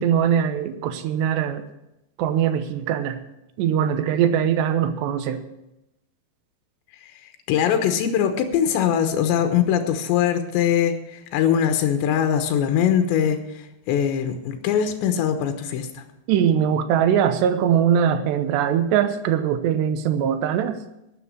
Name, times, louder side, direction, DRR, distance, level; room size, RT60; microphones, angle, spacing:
voice 1, 0.0-1.7 2.2-3.2 3.6-5.4 16.3-20.8, right 9 dB, 80° right, 10 dB, 3.0 m, -21 dB
voice 2, 7.5-16.0, left 9 dB, 90° left, 7 dB, 3.3 m, -22 dB
12.5 x 9.2 x 7.6 m, 0.88 s
omnidirectional pair, 5.1 m